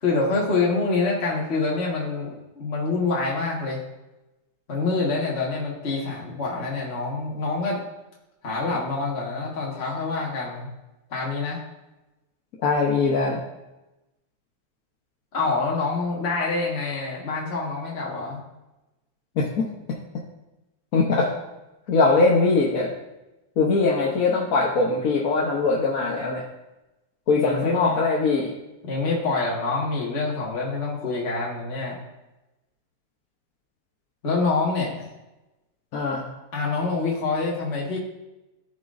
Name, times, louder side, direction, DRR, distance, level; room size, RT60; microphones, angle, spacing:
voice 1, 0.0-3.8 4.7-7.8 8.4-10.7 11.1-11.6 15.3-18.5 27.4-28.0 28.8-32.0 34.2-35.1 36.5-38.0, left 3 dB, 35° left, -4 dB, 1.8 m, -26 dB
voice 2, 12.6-13.4 19.3-19.7 20.9-21.3 21.9-22.9 23.6-26.4 27.3-28.5 35.9-36.3, left 3 dB, 55° left, -3 dB, 1.3 m, -21 dB
17.0 x 6.0 x 2.6 m, 1.0 s
omnidirectional pair, 1.9 m